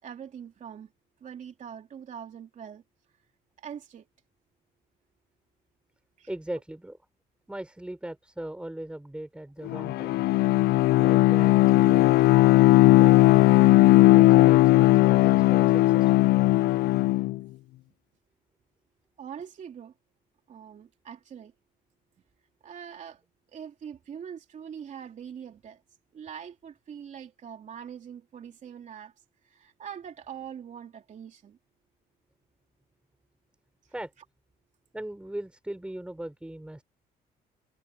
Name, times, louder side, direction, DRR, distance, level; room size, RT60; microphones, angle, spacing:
voice 1, 0.0-0.9 1.2-2.8 3.6-4.1 6.2-6.3 19.2-19.9 20.5-21.6 22.6-23.2 23.5-25.8 26.1-29.1 29.4-31.6 33.8-33.9, right 8 dB, 45° right, 3.1 m, -43 dB
voice 2, 6.3-7.0 7.5-10.2 11.0-12.2 12.9-13.4 14.1-16.3 33.9-34.1 34.9-36.8, right 1 dB, 5° right, 5.0 m, -39 dB
Bowed string instrument, 9.7-17.4, left 18 dB, 70° left, 0.4 m, -18 dB
cardioid pair, 110°, 17 cm